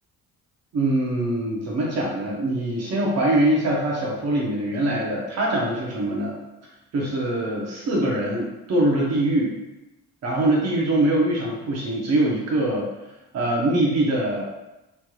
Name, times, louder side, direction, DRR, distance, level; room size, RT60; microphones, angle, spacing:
voice 1, 0.7-6.4 6.9-9.6 10.2-12.9 13.3-14.4, right 1 dB, 55° right, -3 dB, 0.8 m, -23 dB
3.2 x 3.0 x 2.3 m, 0.98 s
cardioid pair, 90°, 30 cm